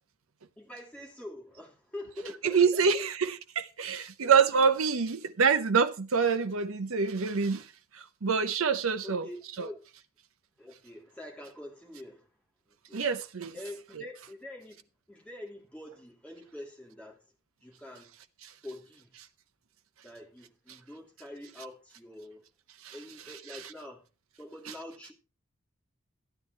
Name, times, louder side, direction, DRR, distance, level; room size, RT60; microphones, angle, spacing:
voice 1, 0.6-3.0 4.2-4.6 9.0-9.8 10.6-12.3 12.9-13.0 13.5-17.2 17.6-18.1 18.6-19.2 20.0-22.5 22.9-24.1 24.4-25.1, left 1 dB, 5° left, 3.1 m, -45 dB
voice 2, 2.4-9.3 9.6-9.7 12.9-13.5 18.4-18.5 22.8-22.9, right 6 dB, 75° right, 0.7 m, -26 dB
13.5 x 9.9 x 3.2 m
head